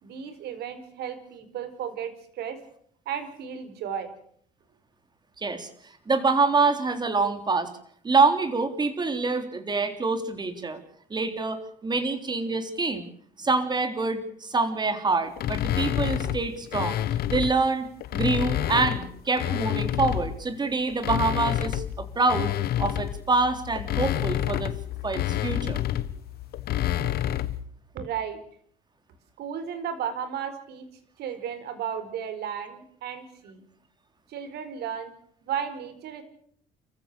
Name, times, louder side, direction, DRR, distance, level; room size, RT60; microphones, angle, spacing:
voice 1, 0.0-2.6 3.1-4.1 27.9-28.4 29.4-30.8 31.2-33.6 34.3-35.1 35.4-36.2, right 8 dB, 75° right, 10 dB, 4.4 m, -34 dB
voice 2, 5.4-5.7 6.1-7.7 8.0-10.8 11.1-13.1 13.4-17.0 17.3-22.5 22.8-24.7 25.0-25.8, right 3 dB, 25° right, 9 dB, 3.5 m, -26 dB
sound 1, 15.4-17.6 18.0-20.4 20.9-27.6, left 12 dB, 70° left, 1.4 m, -28 dB
29.5 x 15.0 x 6.8 m, 0.64 s
cardioid pair, 110°, 17 cm